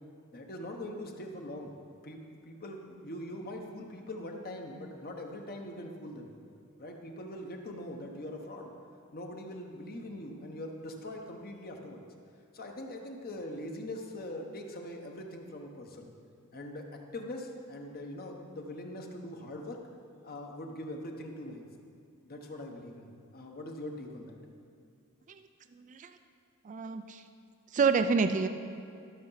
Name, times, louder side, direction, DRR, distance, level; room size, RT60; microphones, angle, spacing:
voice 1, 0.3-1.7 2.0-2.2 2.4-6.3 6.8-8.7 9.1-12.0 12.5-16.1 16.5-19.8 20.2-21.7 22.2-24.3, left 1 dB, 45° left, 2 dB, 1.1 m, -42 dB
voice 2, 25.7-26.1 26.6-27.2 27.7-28.5, right 5 dB, 35° right, 9 dB, 0.4 m, -28 dB
12.5 x 6.7 x 5.7 m, 2.5 s
head